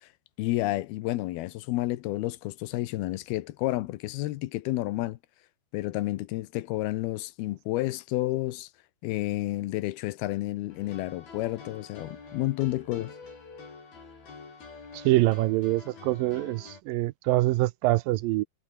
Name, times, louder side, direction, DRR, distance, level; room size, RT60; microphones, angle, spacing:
voice 1, 0.4-5.2 5.7-8.7 9.0-13.1, left 17 dB, 85° left, 2.8 m, -30 dB
sound 1, 10.7-16.8, left 4 dB, 70° left, 9.0 m, -47 dB
voice 2, 14.9-18.4, right 18 dB, 80° right, 2.2 m, -25 dB
omnidirectional pair, 4.4 m